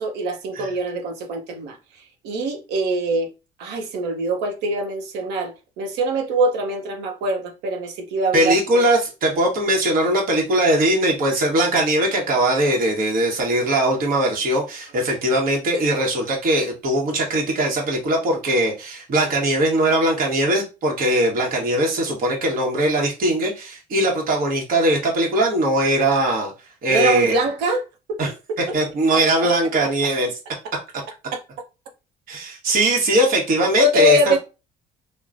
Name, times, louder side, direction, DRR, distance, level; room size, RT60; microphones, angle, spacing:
voice 1, 0.0-3.3 3.6-8.8 26.9-28.2 29.1-29.5 31.3-31.4 33.2-33.3 33.8-34.4, right 1 dB, 90° right, 0.7 m, -23 dB
voice 2, 8.3-26.5 26.8-27.3 28.2-28.3 28.7-30.3 32.3-34.4, right 1 dB, 55° right, 1.1 m, -20 dB
3.0 x 2.1 x 2.4 m
cardioid pair, 110°, 17 cm